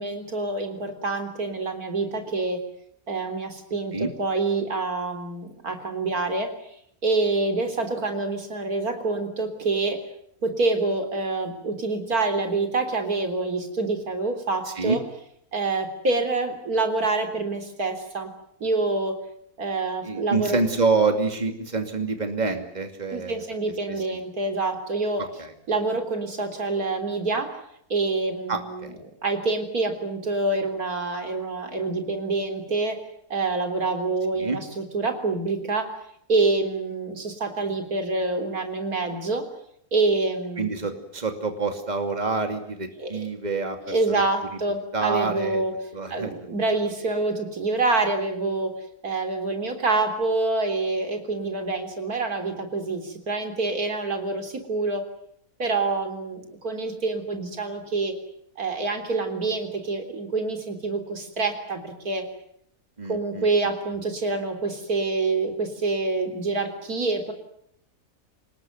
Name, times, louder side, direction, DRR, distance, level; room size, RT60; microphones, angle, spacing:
voice 1, 0.0-2.6 3.1-6.5 7.0-10.0 10.4-15.0 15.5-18.3 18.6-19.1 19.6-20.6 23.1-25.2 25.7-27.5 27.9-28.9 29.2-33.0 33.3-35.9 36.3-39.4 39.9-40.9 43.0-43.3 43.8-45.7 46.1-48.7 49.0-55.0 55.6-58.1 58.6-62.2 63.1-67.3, right 3 dB, 85° right, 6 dB, 4.0 m, -26 dB
voice 2, 14.7-15.0 20.0-23.4 25.2-25.5 28.5-28.9 34.3-34.6 40.6-44.2 44.9-45.6 45.9-46.3 63.0-63.4, right 4 dB, 30° right, 6 dB, 2.8 m, -27 dB
27.5 x 19.5 x 9.5 m, 0.73 s
omnidirectional pair, 1.5 m